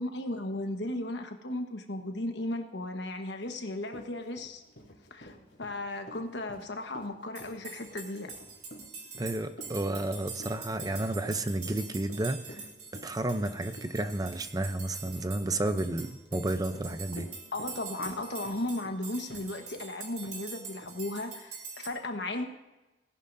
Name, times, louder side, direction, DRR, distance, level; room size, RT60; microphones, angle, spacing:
voice 1, 0.0-4.6 5.1-8.3 17.5-22.5, left 1 dB, 70° left, 5 dB, 1.3 m, -35 dB
Run, 3.5-3.6 3.9-19.9 20.2-20.4 20.8-20.9, equal, 85° left, 3.1 m, -50 dB
sound 1, 7.3-21.9, right 5 dB, 40° right, 3.0 m, -45 dB
voice 2, 9.2-12.7 13.0-17.3, right 2 dB, 20° right, 9 dB, 0.6 m, -31 dB
18.0 x 11.0 x 2.7 m, 1.1 s
head